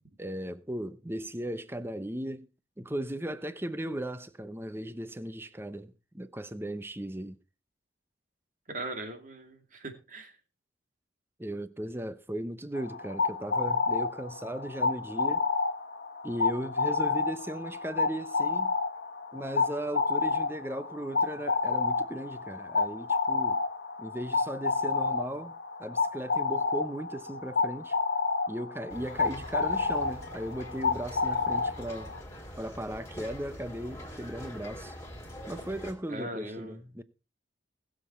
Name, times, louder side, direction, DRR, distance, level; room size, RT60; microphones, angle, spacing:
voice 1, 0.2-2.5 2.8-7.4 11.4-15.5 16.2-18.7 19.3-23.6 24.0-28.0 28.5-32.1 32.6-34.9 35.5-37.0, right 1 dB, 10° right, 0.8 m, -37 dB
voice 2, 8.7-10.3 36.1-36.8, right 1 dB, 45° right, 2.5 m, -39 dB
sound 1, 12.8-32.2, left 4 dB, 70° left, 1.3 m, -29 dB
sound 2, 28.9-35.9, equal, 15° left, 3.7 m, -44 dB
20.5 x 7.5 x 4.4 m
head